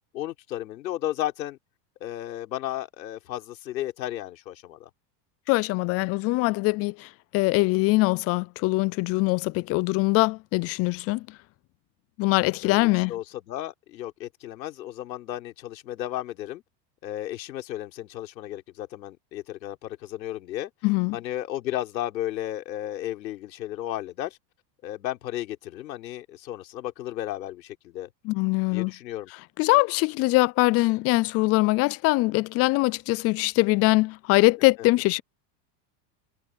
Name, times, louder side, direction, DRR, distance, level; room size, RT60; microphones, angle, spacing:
voice 1, 0.1-1.6 2.0-4.9 12.6-16.6 17.0-20.7 21.1-24.4 24.8-28.1 28.7-29.3 34.8-34.9, left 13 dB, 90° left, 4.6 m, -34 dB
voice 2, 5.5-11.4 12.2-13.1 20.8-21.2 28.2-28.9 29.6-35.2, left 23 dB, 30° left, 0.4 m, -23 dB
supercardioid pair, 125°, 50 cm